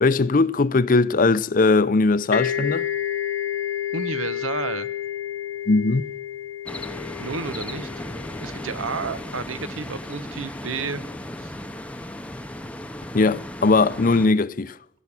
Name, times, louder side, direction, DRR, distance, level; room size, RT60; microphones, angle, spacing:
voice 1, 0.0-2.9 5.7-6.0 13.1-14.7, left 3 dB, 40° left, 0.6 m, -19 dB
sound 1, 2.3-9.8, left 10 dB, 85° left, 0.9 m, -30 dB
voice 2, 3.9-4.9 7.2-8.0 8.4-11.0 11.4-11.5, right 4 dB, 85° right, 1.0 m, -31 dB
sound 2, 6.7-14.3, left 1 dB, 5° left, 0.7 m, -35 dB
16.5 x 7.2 x 9.6 m
head